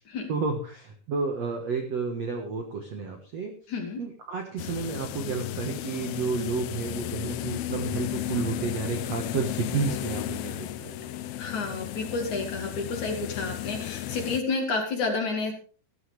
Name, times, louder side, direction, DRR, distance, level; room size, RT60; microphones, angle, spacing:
voice 1, 0.3-3.5 4.0-11.0, right 4 dB, 60° right, 4 dB, 1.8 m, -31 dB
voice 2, 3.7-4.0 11.4-15.5, left 3 dB, 45° left, 2 dB, 3.4 m, -30 dB
sound 1, 4.6-14.4, left 13 dB, 80° left, 2.3 m, -34 dB
15.5 x 14.0 x 3.4 m, 0.39 s
omnidirectional pair, 5.2 m